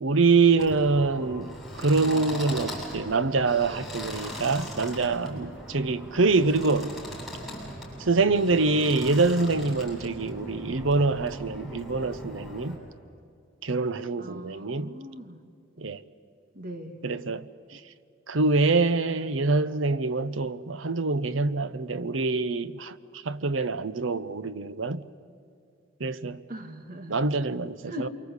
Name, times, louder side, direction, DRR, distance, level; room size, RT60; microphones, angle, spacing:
voice 1, 0.0-6.9 8.0-12.8 13.6-15.0 15.8-16.0 17.0-17.8 18.3-22.9 23.2-25.0 26.0-26.4 27.1-28.1, right 3 dB, 80° right, 0.9 m, -25 dB
sound 1, 0.6-12.8, equal, ahead, 7.4 m, -39 dB
voice 2, 14.2-15.4 16.5-17.0 26.5-27.2 27.9-28.1, equal, 45° right, 2.1 m, -39 dB
27.5 x 24.0 x 8.2 m
head